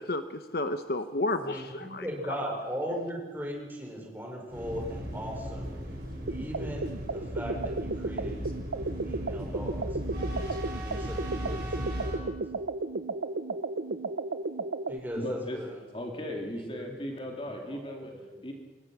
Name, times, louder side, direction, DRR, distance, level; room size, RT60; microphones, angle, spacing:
voice 1, 0.0-2.0, left 2 dB, 55° left, 9 dB, 1.0 m, -31 dB
voice 2, 1.4-5.7 6.3-8.5 9.0-9.9 10.8-12.3 14.9-15.8 16.5-17.0 17.4-17.8 18.1-18.4, equal, 10° right, 0 dB, 5.4 m, -38 dB
sound 1, 4.5-12.2, equal, 50° right, 6.3 m, -37 dB
sound 2, 6.3-15.0, right 3 dB, 80° right, 0.8 m, -34 dB
voice 3, 15.2-15.6 15.9-18.1 18.4-18.5, left 1 dB, 30° left, 1 dB, 2.7 m, -36 dB
26.0 x 21.5 x 6.2 m, 1.3 s
head